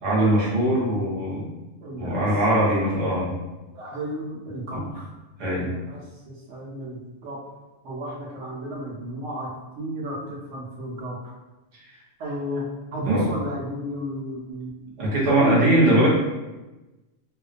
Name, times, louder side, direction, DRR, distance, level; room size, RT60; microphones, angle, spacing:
voice 1, 0.0-1.5 2.0-3.3 4.7-4.8 5.4-5.7 13.0-13.3 15.0-16.1, right 1 dB, 45° right, -6 dB, 0.7 m, -21 dB
voice 2, 1.8-2.6 3.7-5.0 5.5-6.0 6.2-7.4 7.8-9.5 9.8-11.3 12.2-14.7 15.3-16.1, right 1 dB, 70° right, -4 dB, 0.9 m, -33 dB
2.4 x 2.2 x 2.4 m, 1.1 s
omnidirectional pair, 1.3 m